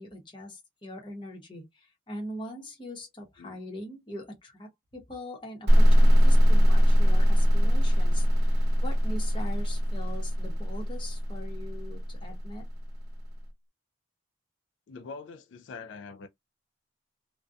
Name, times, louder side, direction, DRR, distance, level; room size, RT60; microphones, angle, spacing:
voice 1, 0.0-12.7, left 1 dB, 25° left, 0.8 m, -42 dB
sound 1, 5.7-13.2, equal, 55° right, 0.8 m, -22 dB
voice 2, 14.9-16.3, left 4 dB, 75° left, 0.3 m, -43 dB
2.5 x 2.1 x 2.4 m
head